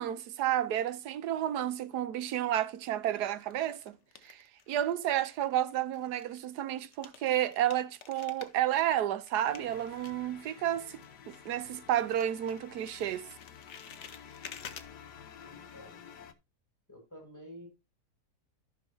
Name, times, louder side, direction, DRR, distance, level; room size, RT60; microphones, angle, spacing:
voice 1, 0.0-4.0 4.2-11.0 11.3-13.3, right 11 dB, 80° right, 1.3 m, -31 dB
sound 1, 2.0-2.6 3.2-5.1 5.3-11.7 12.0-14.9, left 7 dB, 50° left, 1.1 m, -51 dB
sound 2, 9.4-16.3, left 7 dB, 90° left, 1.5 m, -51 dB
voice 2, 15.4-16.0 16.9-17.7, equal, 10° left, 5.5 m, -50 dB
14.5 x 6.0 x 2.7 m
omnidirectional pair, 1.7 m